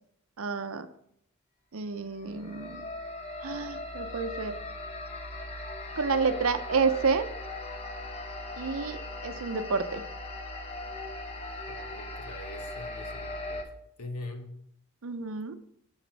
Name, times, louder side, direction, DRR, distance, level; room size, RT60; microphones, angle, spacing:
voice 1, 0.4-0.9 1.7-2.8 3.4-4.6 6.0-7.3 8.6-10.0 15.0-15.5, right 5 dB, 65° right, 10 dB, 0.6 m, -29 dB
sound 1, 2.1-13.6, left 2 dB, 30° left, 0.8 m, -39 dB
voice 2, 11.7-13.7 14.0-14.6, left 2 dB, 90° left, 5 dB, 1.2 m, -43 dB
6.1 x 6.0 x 4.6 m, 0.74 s
head